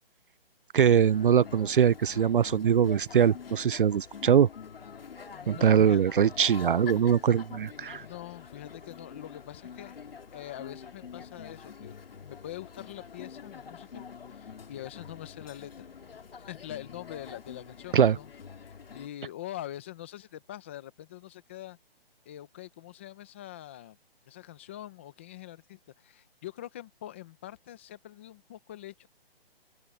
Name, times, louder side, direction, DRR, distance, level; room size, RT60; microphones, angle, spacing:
voice 1, 0.7-4.5 5.5-8.0 17.9-18.2, right 8 dB, 60° right, 0.4 m, -22 dB
sound 1, 0.8-19.1, left 6 dB, 65° left, 3.2 m, -46 dB
voice 2, 5.3-6.0 7.8-10.0 10.3-15.9 16.5-18.3 18.6-21.8 22.3-24.0 24.3-29.1, left 13 dB, 10° left, 0.7 m, -44 dB
open air
hypercardioid pair, 165°, 31 cm